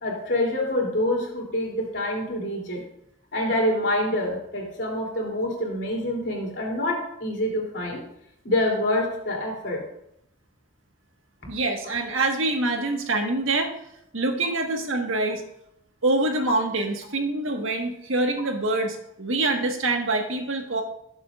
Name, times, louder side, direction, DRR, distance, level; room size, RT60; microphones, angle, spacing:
voice 1, 0.0-2.8 3.3-8.0 8.4-9.8, left 1 dB, 60° left, -2 dB, 3.2 m, -26 dB
voice 2, 11.5-13.7 14.1-15.4 16.0-20.8, right 2 dB, 80° right, 3 dB, 1.6 m, -25 dB
18.0 x 7.5 x 2.5 m, 0.77 s
head